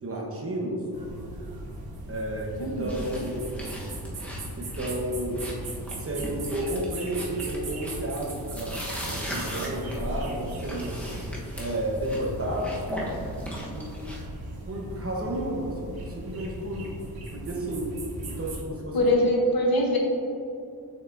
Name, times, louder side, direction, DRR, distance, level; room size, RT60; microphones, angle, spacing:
voice 1, 0.0-0.8 2.1-3.4 4.5-5.5 6.0-11.0 11.5-12.8 13.7-13.9 14.7-17.0 17.3-17.9 18.3-19.0, right 1 dB, 35° right, -2 dB, 1.0 m, -32 dB
sound 1, 0.9-18.6, right 1 dB, 70° right, 1.0 m, -38 dB
sound 2, 2.9-14.2, equal, 5° left, 1.0 m, -38 dB
voice 2, 18.9-20.0, left 1 dB, 65° left, 0 dB, 1.0 m, -22 dB
7.1 x 5.8 x 2.6 m, 2.6 s
wide cardioid pair, 150°, 39 cm